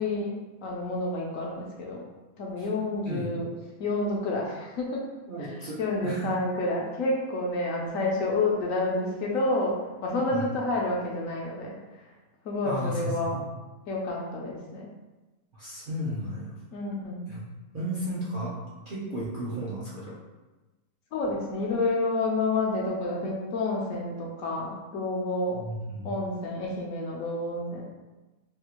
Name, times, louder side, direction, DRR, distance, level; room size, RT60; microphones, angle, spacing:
voice 1, 0.0-2.0 2.4-3.5 3.8-5.0 5.8-11.7 12.4-13.4 13.9-14.9 16.7-17.2 21.1-25.6 26.0-27.8, left 2 dB, 65° left, -2 dB, 0.9 m, -29 dB
voice 2, 5.3-5.8 6.0-6.3 10.3-10.5 12.6-13.4 15.6-16.5 17.3-17.4 17.7-18.5 18.9-20.1 25.5-26.1, equal, 60° right, -8 dB, 0.5 m, -33 dB
3.5 x 2.3 x 2.9 m, 1.1 s
omnidirectional pair, 1.7 m